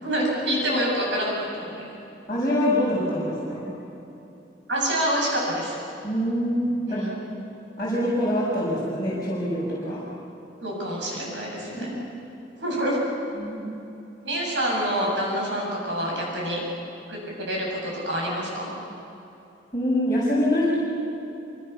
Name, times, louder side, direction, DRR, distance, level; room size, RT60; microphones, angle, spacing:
voice 1, 0.0-1.9 4.7-5.8 6.9-7.2 9.8-10.0 10.6-11.9 12.6-13.0 14.2-16.6 17.1-18.7, equal, 85° right, -2 dB, 7.9 m, -27 dB
voice 2, 2.3-3.7 6.0-7.0 7.8-10.0 11.8-11.9 13.3-13.7 19.7-20.8, equal, 20° left, -10 dB, 6.8 m, -25 dB
27.5 x 27.0 x 7.0 m, 2.9 s
head